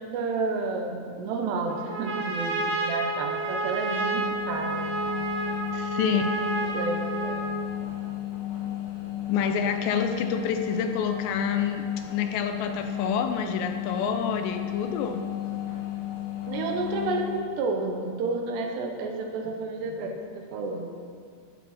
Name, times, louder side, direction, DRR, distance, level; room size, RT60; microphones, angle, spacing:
voice 1, 0.0-5.3 6.1-6.2 6.6-7.6 16.5-21.0, right 3 dB, 75° right, 3 dB, 3.0 m, -31 dB
Trumpet, 1.7-7.7, right 2 dB, 50° right, 1.2 m, -30 dB
sound 1, 3.9-17.5, left 13 dB, 40° left, 2.1 m, -33 dB
voice 2, 5.7-6.2 9.3-15.2 19.5-19.6, left 6 dB, 80° left, 7 dB, 2.8 m, -28 dB
15.0 x 12.0 x 4.3 m, 2.1 s
omnidirectional pair, 5.3 m